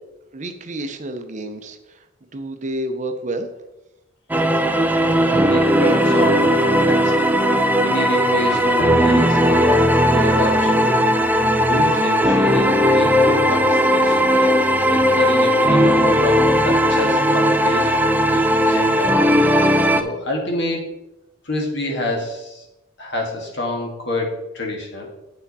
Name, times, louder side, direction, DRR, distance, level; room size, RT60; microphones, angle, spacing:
voice 1, 0.3-2.0 2.3-3.5, right 1 dB, 40° right, 7 dB, 0.7 m, -29 dB
sound 1, 4.3-20.0, equal, 10° right, 0.4 m, -17 dB
voice 2, 5.0-7.1 7.8-11.0 11.6-14.5 14.9-19.1 19.5-20.9 21.4-22.7 23.0-25.1, left 1 dB, 60° left, 1 dB, 1.9 m, -27 dB
8.6 x 5.9 x 4.2 m, 0.96 s
head